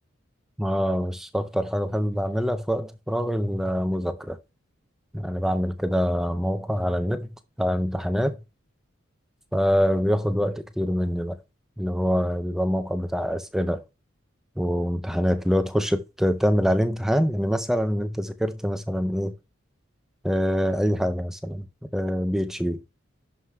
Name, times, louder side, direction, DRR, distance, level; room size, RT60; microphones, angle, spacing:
voice 1, 0.6-4.4 5.1-7.3 7.6-8.4 9.5-11.4 11.8-13.8 14.6-19.3 20.2-21.7 21.9-22.8, equal, ahead, 0.4 m, -25 dB
11.5 x 4.8 x 2.2 m
head